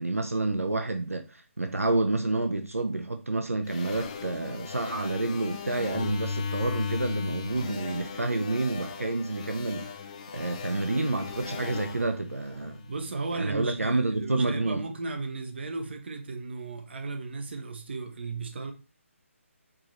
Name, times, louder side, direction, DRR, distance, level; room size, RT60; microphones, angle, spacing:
voice 1, 0.0-9.9 10.3-12.8 13.3-14.8, right 2 dB, 85° right, 0.5 m, -29 dB
sound 1, 3.7-13.1, left 5 dB, 30° left, 0.5 m, -37 dB
voice 2, 12.9-18.7, right 3 dB, 50° right, 0.8 m, -35 dB
4.7 x 2.5 x 3.0 m
figure-of-eight pair, 145°, 8 cm